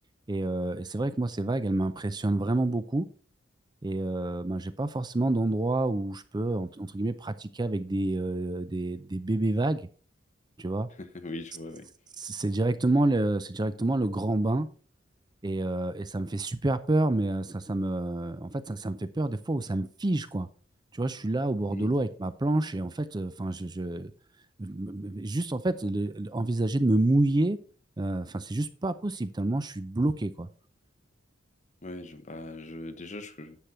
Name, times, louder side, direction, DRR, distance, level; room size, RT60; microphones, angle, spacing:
voice 1, 0.3-3.1 3.8-9.8 10.6-10.9 12.2-14.7 15.4-20.5 20.9-24.1 24.6-27.6 28.0-30.5, right 2 dB, 20° right, 0.5 m, -28 dB
voice 2, 11.0-11.8 21.7-21.9 31.8-33.6, left 2 dB, 40° left, 1.2 m, -40 dB
10.0 x 6.5 x 4.3 m
head